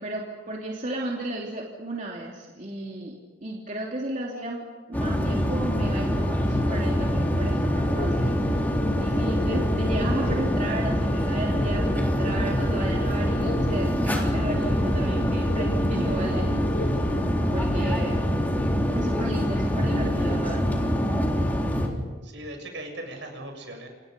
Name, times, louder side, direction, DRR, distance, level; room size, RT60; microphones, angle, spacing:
voice 1, 0.0-3.1 3.4-16.9 17.5-18.3 18.9-20.9, right 1 dB, 40° right, -2 dB, 3.1 m, -34 dB
sound 1, 4.9-21.9, equal, 10° left, 3.7 m, -25 dB
sound 2, 7.8-17.4, left 1 dB, 65° left, 3.4 m, -35 dB
voice 2, 22.2-23.9, right 1 dB, 70° right, 3 dB, 7.3 m, -39 dB
29.0 x 27.0 x 5.4 m, 1.4 s
head